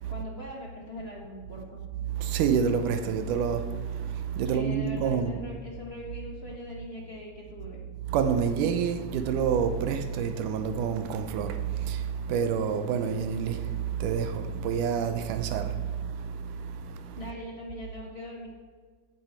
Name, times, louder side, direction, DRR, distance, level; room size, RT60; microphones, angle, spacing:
voice 1, 0.1-1.8 4.4-7.8 17.2-18.5, left 1 dB, 25° left, 1.6 m, -41 dB
voice 2, 2.1-5.4 8.1-17.2, right 7 dB, 85° right, 2.4 m, -28 dB
15.5 x 8.7 x 4.7 m
omnidirectional pair, 3.7 m